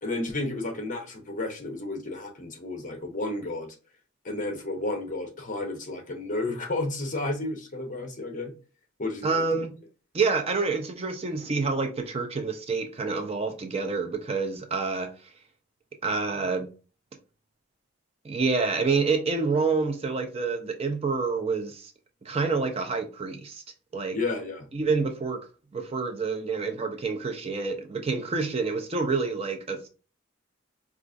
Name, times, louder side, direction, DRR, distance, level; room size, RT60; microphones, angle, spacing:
voice 1, 0.0-3.7 4.2-8.5 9.0-9.5 24.1-24.7, left 2 dB, 40° left, 0.7 m, -32 dB
voice 2, 9.2-9.8 10.1-15.1 16.0-16.7 18.2-21.9 22.3-23.6 23.9-24.2 24.7-25.4 25.7-29.9, right 4 dB, 30° right, 0.4 m, -27 dB
4.7 x 2.4 x 2.5 m
head